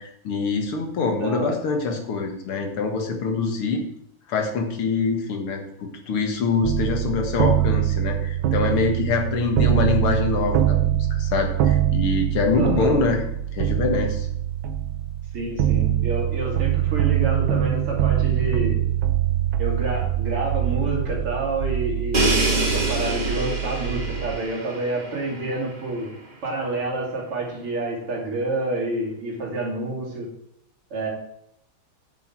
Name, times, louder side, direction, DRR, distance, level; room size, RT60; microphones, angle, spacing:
voice 1, 0.0-3.8 4.3-10.8 11.1-13.2 13.5-14.3, left 4 dB, 80° left, 3 dB, 2.6 m, -24 dB
voice 2, 1.2-1.6 1.9-2.0 12.5-12.9 15.3-18.8 19.6-26.1 26.4-30.3 30.9-31.1, right 2 dB, 90° right, -1 dB, 3.7 m, -28 dB
sound 1, 6.6-24.4, right 11 dB, 70° right, 1.5 m, -23 dB
Crash cymbal, 22.1-25.9, right 1 dB, 25° right, 1.3 m, -27 dB
9.2 x 7.6 x 4.6 m, 0.75 s
omnidirectional pair, 2.4 m